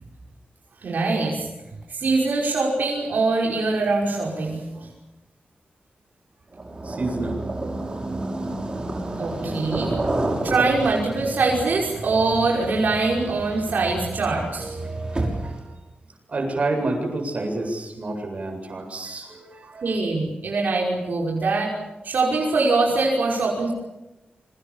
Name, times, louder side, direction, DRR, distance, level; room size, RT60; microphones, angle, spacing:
voice 1, 0.8-1.5 1.9-4.9 9.2-9.9 10.4-14.8 19.8-21.7 22.0-23.7, right 3 dB, 75° right, -2 dB, 5.6 m, -23 dB
sound 1, 6.5-15.7, right 2 dB, 30° right, 6.3 m, -30 dB
voice 2, 6.8-7.4 9.4-9.6 14.6-15.8 16.3-20.0, right 2 dB, 45° right, 3 dB, 7.9 m, -29 dB
27.5 x 25.5 x 7.3 m, 0.99 s
wide cardioid pair, 150°, 3 cm